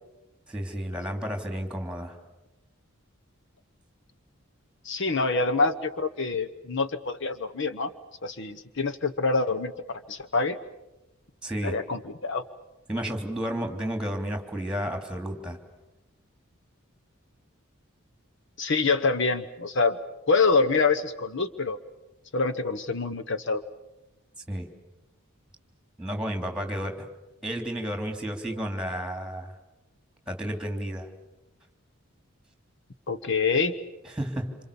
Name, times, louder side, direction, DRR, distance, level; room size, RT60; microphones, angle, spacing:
voice 1, 0.5-2.2 11.4-11.8 12.9-15.6 24.5-24.7 26.0-27.1 27.4-29.5 30.3-31.1 34.0-34.6, equal, 5° right, 5 dB, 3.3 m, -32 dB
voice 2, 4.8-7.9 8.2-10.6 11.6-12.4 18.6-20.0 20.3-21.8 22.3-23.6 33.1-33.7, left 4 dB, 60° left, 9 dB, 1.1 m, -26 dB
27.5 x 27.0 x 7.1 m, 0.97 s
head